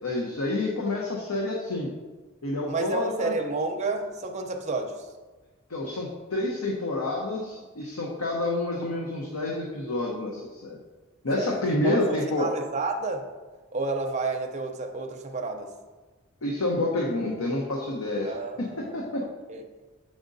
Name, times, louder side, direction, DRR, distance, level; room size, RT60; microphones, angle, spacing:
voice 1, 0.0-1.9 2.4-3.3 5.7-10.8 11.2-12.5 16.4-18.3 18.9-19.1, left 2 dB, 90° left, -1 dB, 0.8 m, -28 dB
voice 2, 2.7-5.1 11.4-13.3 13.7-15.7 18.2-19.0 19.5-19.6, right 3 dB, 30° right, 3 dB, 0.6 m, -31 dB
7.2 x 5.0 x 2.6 m, 1.3 s
head